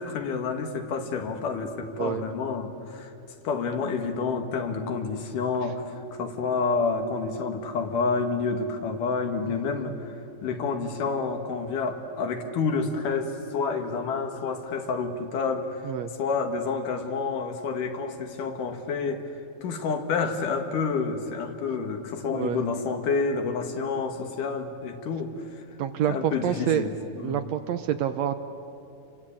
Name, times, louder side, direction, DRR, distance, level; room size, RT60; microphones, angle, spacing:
voice 1, 0.0-3.1 3.5-10.1 10.4-15.9 16.2-19.3 19.6-25.4 26.1-27.4, left 4 dB, 80° left, 5 dB, 3.3 m, -29 dB
voice 2, 22.3-22.6 25.8-26.9 27.2-28.4, right 10 dB, 70° right, 9 dB, 1.7 m, -27 dB
29.0 x 23.5 x 8.7 m, 2.8 s
omnidirectional pair, 3.7 m